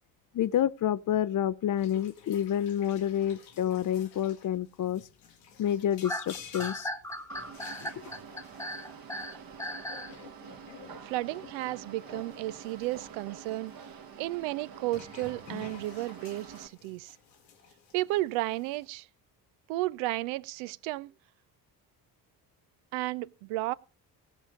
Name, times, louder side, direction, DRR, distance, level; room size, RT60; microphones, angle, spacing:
voice 1, 0.3-5.0 5.6-6.9 7.8-7.9, left 10 dB, 40° left, 0.6 m, -29 dB
sound 1, 1.8-14.0 14.8-18.8, left 6 dB, 85° left, 1.5 m, -52 dB
sound 2, 6.0-10.1, equal, 5° left, 1.0 m, -37 dB
sound 3, 7.3-16.7, right 6 dB, 45° right, 1.3 m, -47 dB
voice 2, 11.0-13.7 14.2-17.1 17.9-19.1 19.7-21.1 22.9-23.7, right 18 dB, 65° right, 0.6 m, -33 dB
17.0 x 6.4 x 5.0 m
hypercardioid pair, 45°, 50 cm